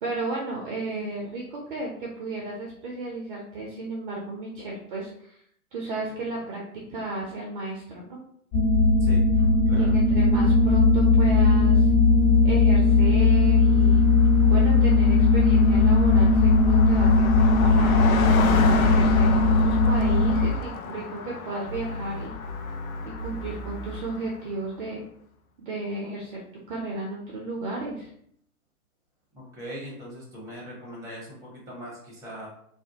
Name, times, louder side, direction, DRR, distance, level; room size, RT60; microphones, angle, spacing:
voice 1, 0.0-5.4 5.7-6.6 6.9-8.2 9.7-11.9 12.4-14.0 14.5-18.0 18.7-22.3 23.2-25.0 25.6-26.4 26.7-28.1, right 2 dB, 35° right, -2 dB, 0.5 m, -34 dB
sound 1, 8.5-20.5, left 3 dB, 40° left, 1.3 m, -18 dB
voice 2, 9.7-10.0 29.3-32.5, equal, 5° right, -4 dB, 0.8 m, -40 dB
Car passing by, 13.2-13.3 13.5-24.5, left 5 dB, 65° left, 0.5 m, -33 dB
sound 2, 17.2-18.0 18.3-20.5 21.7-24.0, left 3 dB, 85° left, 0.9 m, -36 dB
2.4 x 2.1 x 2.8 m, 0.68 s
figure-of-eight pair, 110°, 45 cm